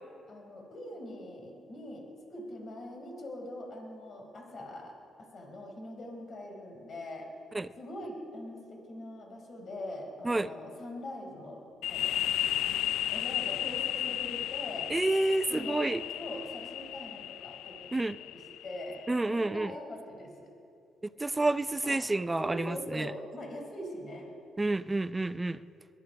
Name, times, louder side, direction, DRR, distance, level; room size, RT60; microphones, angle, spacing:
voice 1, 0.3-2.0 2.3-7.3 7.8-12.2 13.1-14.9 15.5-20.5 21.8-22.0 22.4-24.3, left 1 dB, 50° left, 1 dB, 4.6 m, -43 dB
sound 1, 11.8-19.3, left 12 dB, 90° left, 0.4 m, -34 dB
voice 2, 14.9-16.0 17.9-18.2 19.1-19.7 21.2-23.1 24.6-25.6, right 2 dB, 15° right, 15 dB, 0.5 m, -29 dB
21.0 x 12.0 x 5.9 m, 2.6 s
cardioid pair, 90°, 0 cm